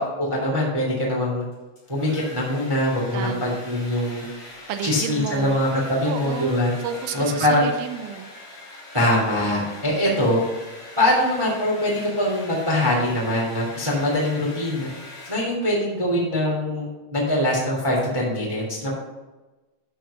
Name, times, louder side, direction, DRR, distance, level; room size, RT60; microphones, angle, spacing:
voice 1, 0.0-1.4 1.9-4.3 4.8-6.7 7.1-7.7 8.9-10.4 11.0-14.9 15.3-18.9, left 1 dB, 10° right, -4 dB, 1.9 m, -23 dB
Domestic sounds home sounds, 1.5-15.8, left 1 dB, 60° left, 5.2 m, -42 dB
voice 2, 3.1-3.6 4.7-5.6 6.0-8.3 9.9-10.0, right 8 dB, 80° right, 7 dB, 2.3 m, -31 dB
12.5 x 4.7 x 5.8 m, 1.1 s
omnidirectional pair, 4.5 m